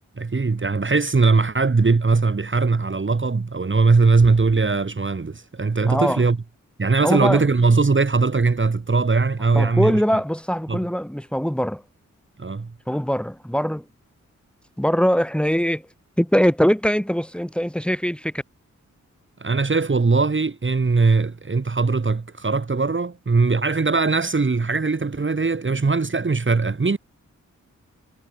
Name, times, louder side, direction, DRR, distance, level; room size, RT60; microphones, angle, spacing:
voice 1, 0.2-6.4 6.8-10.0 10.7-10.8 12.4-12.7 19.4-27.0, right 4 dB, 40° right, 2.4 m, -20 dB
voice 2, 5.9-6.3 7.0-7.5 9.5-11.8 12.9-13.9 14.8-15.9 16.2-18.4, equal, 5° left, 5.8 m, -22 dB
cardioid pair, 55°, 31 cm